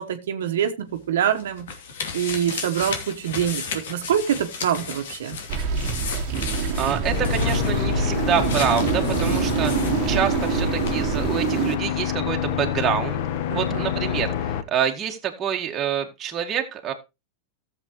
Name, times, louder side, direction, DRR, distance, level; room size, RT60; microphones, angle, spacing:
voice 1, 0.0-1.7 2.1-5.4 13.5-13.9, right 9 dB, 85° right, 1.2 m, -25 dB
sound 1, 0.9-10.6 10.8-10.9, left 5 dB, 80° left, 2.6 m, -34 dB
sound 2, 5.5-11.7, right 7 dB, 45° right, 1.4 m, -25 dB
voice 2, 6.8-13.2 13.5-16.9, right 8 dB, 25° right, 1.9 m, -27 dB
sound 3, 7.0-14.6, left 9 dB, 60° left, 1.1 m, -27 dB
14.0 x 7.3 x 3.1 m
supercardioid pair, 140°, 0 cm